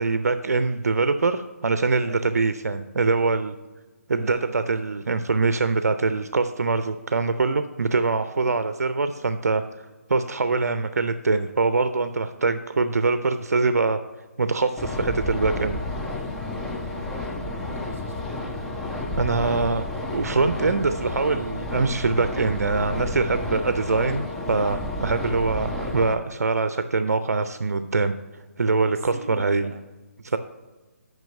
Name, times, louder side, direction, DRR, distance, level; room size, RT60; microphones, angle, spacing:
voice 1, 0.0-3.5 4.1-9.6 10.1-14.0 14.4-15.8 19.2-19.8 20.1-29.7 30.2-30.4, right 3 dB, 90° right, 10 dB, 0.4 m, -23 dB
voice 2, 2.1-2.4 4.1-5.0 8.4-8.6 12.3-12.6 16.8-17.1 17.4-18.4 28.9-29.8, right 4 dB, 55° right, 9 dB, 0.8 m, -44 dB
sound 1, 14.8-26.1, left 2 dB, 5° left, 0.4 m, -31 dB
6.2 x 5.2 x 5.3 m, 1.2 s
hypercardioid pair, 155°, 8 cm